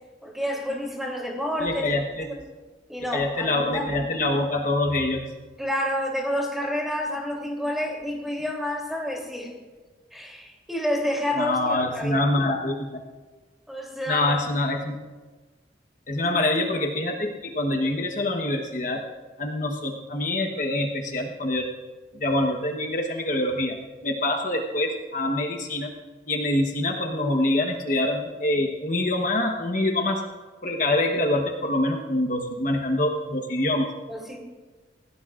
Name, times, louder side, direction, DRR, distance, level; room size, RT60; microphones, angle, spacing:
voice 1, 0.2-1.9 2.3-2.4 2.9-4.0 5.6-9.5 10.1-12.3 13.7-14.3 16.2-16.6 34.1-34.4, equal, ahead, -1 dB, 3.1 m, -29 dB
voice 2, 1.6-2.2 3.1-5.3 11.4-12.8 14.1-15.0 16.1-19.0 19.4-21.7 22.1-23.8 24.0-25.9 26.3-30.2 30.6-33.9, left 1 dB, 45° left, 2 dB, 1.1 m, -25 dB
30.0 x 17.0 x 2.5 m, 1.3 s
head